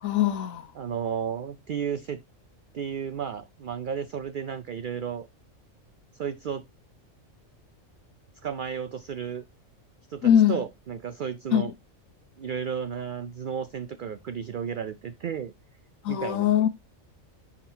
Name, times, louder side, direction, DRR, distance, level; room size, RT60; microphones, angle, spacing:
voice 1, 0.0-0.7 10.2-10.6 11.5-11.6 16.0-16.7, left 10 dB, 75° left, 1.3 m, -21 dB
voice 2, 0.7-2.2 2.7-5.3 6.2-6.6 8.4-9.4 10.1-11.7 12.4-15.5 16.1-16.5, right 7 dB, 80° right, 0.4 m, -33 dB
10.0 x 3.6 x 2.6 m
omnidirectional pair, 1.4 m